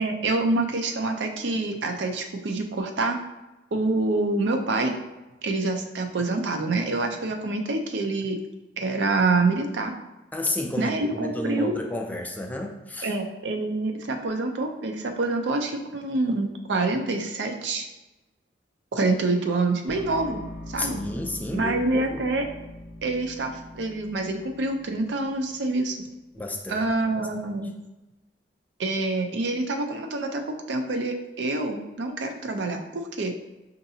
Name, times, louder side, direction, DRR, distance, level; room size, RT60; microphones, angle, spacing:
voice 1, 0.0-3.2 3.7-4.9 5.4-8.4 8.8-9.9 10.8-11.7 13.0-17.8 18.9-20.4 20.7-21.0 21.5-22.5 23.0-26.0 26.7-27.7 28.8-33.4, right 2 dB, 85° right, 4 dB, 0.5 m, -26 dB
voice 2, 10.3-13.1 20.8-22.2 26.3-26.9 27.1-27.3, left 1 dB, 10° left, 3 dB, 0.3 m, -31 dB
sound 1, 19.9-25.9, left 1 dB, 65° left, 0.6 m, -42 dB
5.6 x 2.6 x 2.7 m, 1.0 s
head